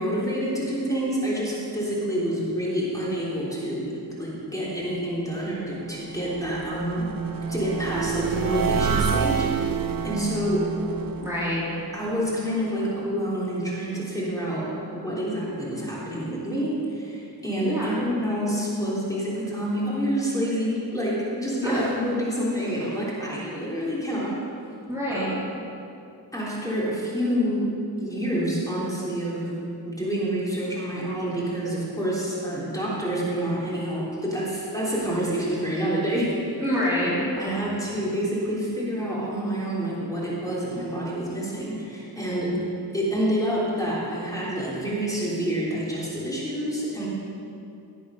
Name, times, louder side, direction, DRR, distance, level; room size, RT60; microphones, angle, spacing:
voice 1, 0.0-7.2 7.5-10.7 11.9-24.4 25.1-25.3 26.3-29.6 29.8-36.4 36.9-37.1 37.4-42.6 42.9-47.1, equal, 10° left, -7 dB, 3.6 m, -28 dB
sound 1, 5.5-12.6, right 7 dB, 55° right, 0.7 m, -29 dB
voice 2, 11.2-11.8 17.6-18.0 21.6-21.9 24.9-25.4 36.6-37.3 42.5-42.8, equal, 5° right, -9 dB, 3.3 m, -27 dB
18.0 x 8.3 x 5.7 m, 2.6 s
wide cardioid pair, 100°, 40 cm